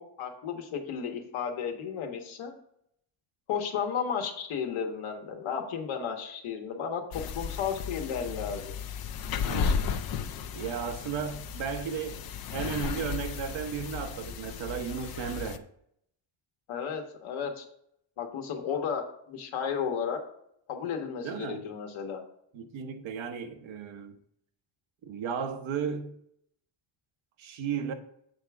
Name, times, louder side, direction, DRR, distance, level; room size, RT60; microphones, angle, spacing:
voice 1, 0.0-2.5 3.5-8.8 16.7-17.6 18.2-20.2 20.7-22.2, left 7 dB, 80° left, 1.5 m, -33 dB
sound 1, 7.1-15.6, left 6 dB, 50° left, 0.6 m, -34 dB
voice 2, 9.4-9.8 10.5-12.2 12.5-15.6 21.2-21.6 22.5-24.2 25.0-26.1 27.4-27.9, right 7 dB, 70° right, 1.0 m, -34 dB
7.5 x 3.5 x 6.0 m
cardioid pair, 105°, 48 cm